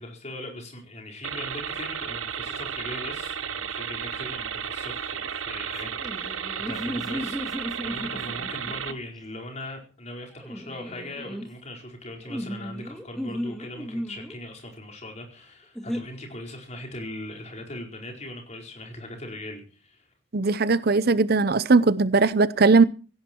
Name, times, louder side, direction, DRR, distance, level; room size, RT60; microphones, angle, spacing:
voice 1, 0.0-7.5 7.8-20.0, left 1 dB, 35° left, 4.5 m, -40 dB
sound 1, 1.2-8.9, right 8 dB, 90° right, 1.1 m, -33 dB
sound 2, 5.9-8.9 10.4-11.5 12.3-14.4 15.7-16.0, equal, ahead, 2.0 m, -34 dB
voice 2, 20.3-22.8, right 3 dB, 50° right, 0.7 m, -19 dB
17.5 x 16.0 x 4.5 m
head